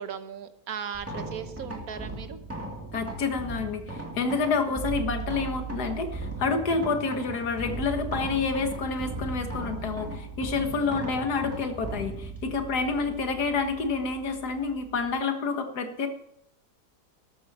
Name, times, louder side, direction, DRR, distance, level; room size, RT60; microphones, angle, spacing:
voice 1, 0.0-2.4 4.7-4.8 9.8-9.9 10.7-11.0 12.9-13.1, right 7 dB, 65° right, 10 dB, 1.3 m, -38 dB
sound 1, 0.9-15.2, right 2 dB, 10° right, 2.2 m, -37 dB
voice 2, 2.9-16.1, left 4 dB, 70° left, 6 dB, 2.0 m, -28 dB
13.5 x 12.5 x 4.2 m, 0.78 s
omnidirectional pair, 1.8 m